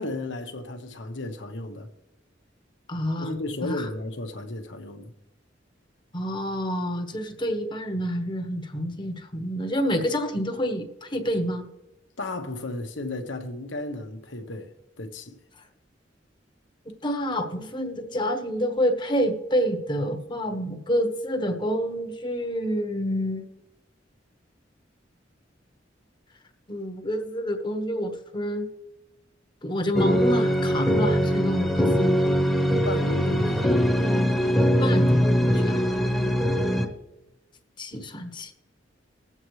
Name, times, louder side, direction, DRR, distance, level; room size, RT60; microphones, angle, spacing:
voice 1, 0.0-1.9 3.2-5.1 12.2-14.7 15.0-15.3 32.8-33.7, left 2 dB, 85° left, 1.1 m, -34 dB
voice 2, 2.9-3.9 6.1-11.7 17.0-23.5 26.7-28.7 29.6-32.1 34.8-35.8 37.8-38.5, equal, 25° left, 1.1 m, -28 dB
sound 1, 29.9-36.9, equal, ahead, 1.0 m, -22 dB
21.0 x 8.0 x 3.2 m
head